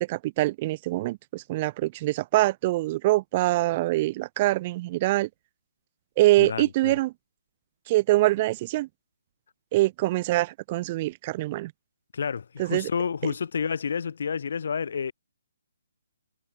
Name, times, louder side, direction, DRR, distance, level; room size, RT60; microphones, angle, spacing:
voice 1, 0.0-5.3 6.2-7.1 7.9-8.9 9.7-11.7 12.6-12.9, right 18 dB, 25° right, 0.4 m, -24 dB
voice 2, 6.4-7.0 12.1-15.1, left 6 dB, 60° left, 2.9 m, -30 dB
hypercardioid pair, 170°, 0 cm